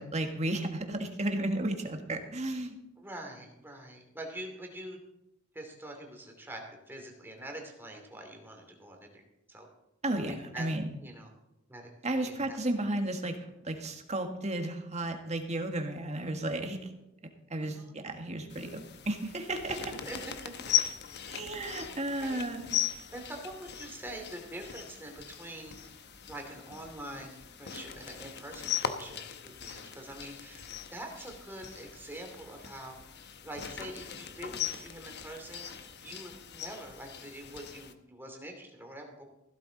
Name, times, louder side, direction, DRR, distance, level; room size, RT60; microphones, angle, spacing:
voice 1, 0.0-2.8 10.0-10.9 12.0-13.4 13.6-16.9 17.5-19.9 21.3-22.7, right 1 dB, 35° right, 4 dB, 1.7 m, -33 dB
voice 2, 3.0-5.0 5.5-6.6 6.9-9.2 9.5-9.7 10.2-10.7 11.0-11.3 11.7-11.9 12.2-12.9 17.6-17.9 20.0-20.5 22.2-22.4 23.1-25.7 26.3-30.6 30.9-33.0 33.4-35.7 36.0-39.2, right 1 dB, 10° right, 2 dB, 2.7 m, -44 dB
sound 1, 18.5-37.9, left 10 dB, 55° left, 1.0 m, -39 dB
15.5 x 12.5 x 4.0 m, 0.90 s
head